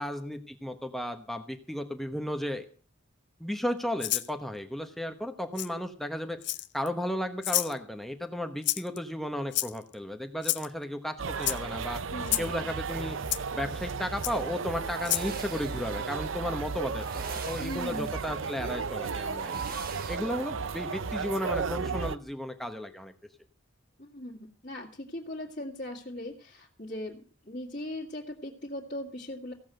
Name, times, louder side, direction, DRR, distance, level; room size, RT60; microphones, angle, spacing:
voice 1, 0.0-2.7 3.4-6.4 6.7-12.0 12.4-13.2 13.5-19.6 20.1-23.1, left 1 dB, ahead, 5 dB, 1.0 m, -34 dB
Rattle (instrument), 4.0-4.3 5.6-5.7 6.4-6.9 7.4-7.7 8.6-9.0 9.5-9.9 10.4-10.7 11.4-11.6 12.3-12.5 13.3-13.4 14.2-14.3 15.0-15.3, left 15 dB, 55° left, 0.7 m, -29 dB
sound 1, 11.2-22.2, right 5 dB, 70° right, 0.6 m, -34 dB
voice 2, 12.1-12.7 17.6-18.2 24.0-29.5, left 1 dB, 40° left, -5 dB, 2.2 m, -39 dB
sound 2, 12.6-20.2, right 5 dB, 45° right, 1.2 m, -45 dB
16.0 x 7.2 x 7.7 m, 0.42 s
head